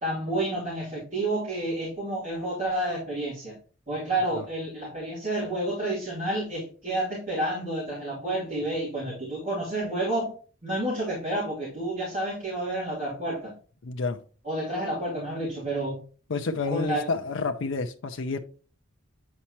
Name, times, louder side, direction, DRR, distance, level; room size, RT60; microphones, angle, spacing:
voice 1, 0.0-3.6 3.9-10.4 10.6-13.5 14.4-16.0 16.7-17.1, right 1 dB, 40° right, 2.7 m, -30 dB
voice 2, 13.8-14.2 16.3-18.4, left 4 dB, 65° left, 0.5 m, -29 dB
8.5 x 4.3 x 2.9 m
head